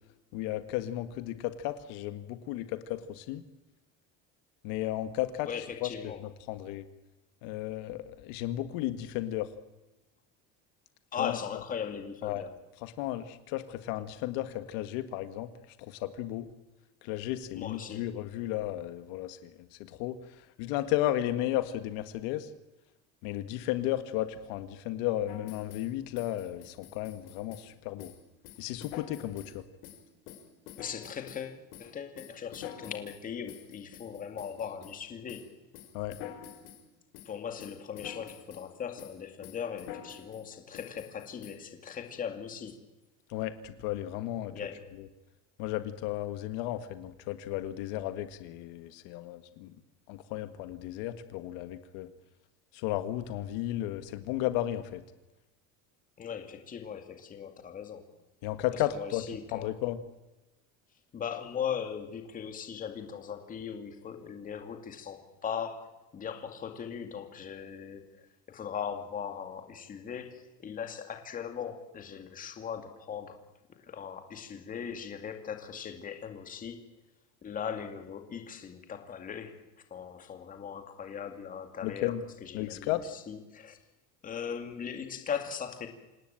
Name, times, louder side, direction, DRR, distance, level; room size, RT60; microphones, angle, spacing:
voice 1, 0.3-3.4 4.6-5.5 5.8-6.8 7.4-9.5 11.2-11.4 12.2-12.4 12.8-15.5 15.8-16.5 17.0-20.2 20.6-22.5 23.2-28.1 28.6-29.6 35.9-36.1 43.3-44.5 45.6-49.7 50.1-52.1 52.7-55.0 58.4-60.0 81.8-82.2 82.5-83.1, left 14 dB, 65° left, 11 dB, 1.7 m, -34 dB
voice 2, 5.4-6.2 11.1-12.5 17.5-18.0 30.8-35.4 37.3-42.8 44.5-44.9 56.2-58.0 58.7-59.7 61.1-68.0 68.5-73.4 73.8-76.8 77.4-79.6 79.9-82.1 82.4-83.8 84.2-85.9, left 7 dB, 20° left, 6 dB, 2.5 m, -39 dB
sound 1, 25.3-25.9 26.1-27.7 28.0-28.2 28.4-29.6 29.8-31.5 31.7-35.0 35.3-35.5 35.7-36.8 37.1-37.3 37.6-38.7 39.0-39.2 39.4-40.4 40.7-41.5, left 10 dB, 90° left, 5.6 m, -47 dB
27.0 x 18.0 x 9.0 m, 1.1 s
cardioid pair, 175°, 36 cm